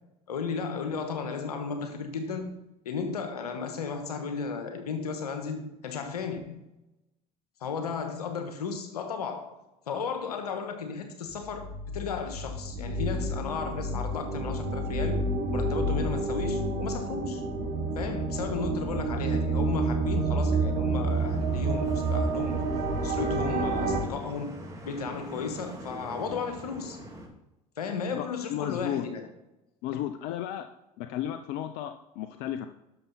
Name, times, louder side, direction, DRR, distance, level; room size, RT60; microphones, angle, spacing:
voice 1, 0.3-2.5 2.8-6.6 7.6-9.6 9.9-15.3 15.5-17.4 17.9-22.6 23.0-27.0 27.8-29.3, left 5 dB, 85° left, 1.4 m, -34 dB
sound 1, 11.4-24.0, right 2 dB, 50° right, 3.7 m, -29 dB
sound 2, 21.1-27.3, right 1 dB, 15° right, 2.8 m, -44 dB
voice 2, 28.1-29.1 29.8-30.7 31.0-32.7, left 11 dB, 60° left, 0.7 m, -33 dB
11.0 x 6.9 x 4.2 m
hypercardioid pair, 70°, 19 cm